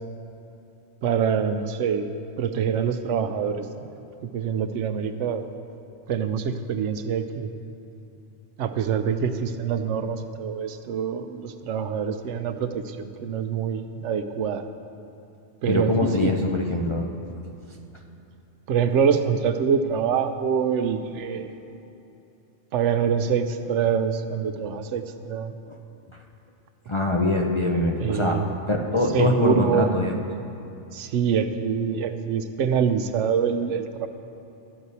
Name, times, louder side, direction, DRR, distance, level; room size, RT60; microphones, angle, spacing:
voice 1, 1.0-2.1 2.4-3.9 4.2-5.4 6.1-7.5 8.6-14.6 15.6-16.3 18.7-21.5 22.7-25.5 28.0-28.5 29.1-29.9 30.9-34.1, right 7 dB, 85° right, 9 dB, 0.9 m, -25 dB
voice 2, 15.7-17.1 25.7-25.8 26.9-30.2, left 1 dB, 35° left, 1 dB, 0.5 m, -23 dB
12.5 x 8.0 x 4.1 m, 2.9 s
omnidirectional pair, 1.2 m